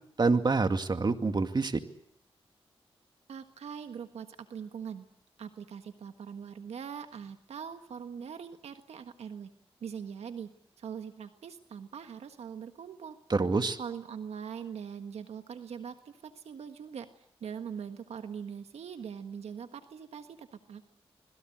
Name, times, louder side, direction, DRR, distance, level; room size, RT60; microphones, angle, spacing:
voice 1, 0.2-1.8 13.3-13.8, right 3 dB, 45° right, 7 dB, 2.2 m, -26 dB
voice 2, 3.3-5.0 5.4-9.5 9.8-10.5 10.8-13.2 13.8-20.9, right 7 dB, 85° right, 8 dB, 1.5 m, -42 dB
27.0 x 21.0 x 7.9 m, 0.68 s
cardioid pair, 55°, 11 cm